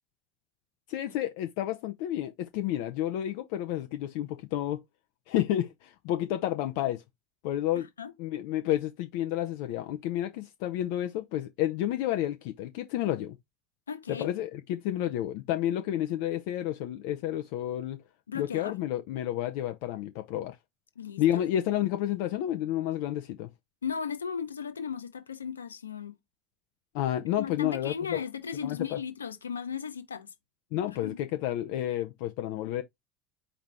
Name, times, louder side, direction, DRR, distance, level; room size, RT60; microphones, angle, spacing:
voice 1, 0.9-4.8 5.3-7.0 7.4-7.9 8.2-13.4 14.1-18.0 18.3-20.6 21.2-23.5 26.9-28.2 28.6-29.0 30.7-32.8, left 12 dB, 55° left, 0.4 m, -30 dB
voice 2, 7.8-8.1 13.9-14.3 18.3-18.8 21.0-21.4 23.8-26.1 27.4-30.3 31.0-31.2, left 7 dB, 80° left, 0.7 m, -36 dB
4.9 x 2.7 x 3.3 m
figure-of-eight pair, 70°, 0 cm